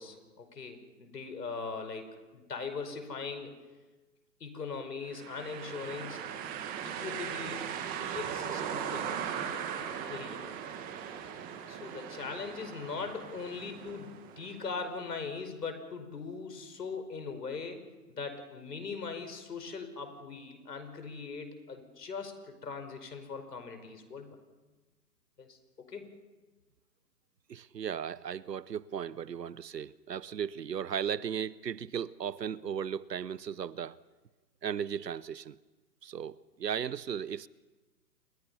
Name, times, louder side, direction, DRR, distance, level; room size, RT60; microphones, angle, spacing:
voice 1, 0.0-3.5 4.4-6.3 6.8-7.7 8.1-9.6 10.1-10.4 11.7-17.8 18.1-24.4 25.4-26.1, left 5 dB, 70° left, 5.4 m, -40 dB
sound 1, 5.1-14.9, right 8 dB, 15° right, 1.7 m, -39 dB
voice 2, 27.5-34.0 34.6-35.6 36.0-37.5, right 8 dB, 80° right, 0.9 m, -36 dB
28.0 x 22.0 x 5.6 m
hypercardioid pair, 140°, 49 cm